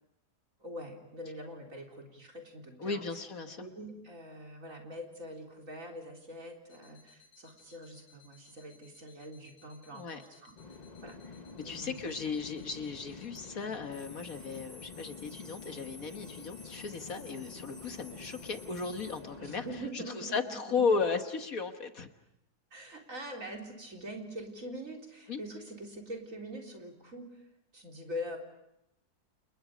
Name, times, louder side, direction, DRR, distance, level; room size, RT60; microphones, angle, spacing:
voice 1, 0.6-3.0 3.6-10.5 11.0-11.2 11.6-12.0 19.4-20.8 22.7-27.4 27.7-28.4, equal, 50° right, 1 dB, 4.4 m, -44 dB
voice 2, 2.8-3.6 9.9-10.2 11.6-19.7 19.9-22.1 25.3-25.4, left 5 dB, 60° left, 6 dB, 1.8 m, -35 dB
sound 1, 6.7-19.2, left 4 dB, 90° left, 6.1 m, -55 dB
sound 2, 10.5-19.9, left 4 dB, 30° left, 1.1 m, -48 dB
30.0 x 29.0 x 5.1 m, 0.83 s
omnidirectional pair, 1.7 m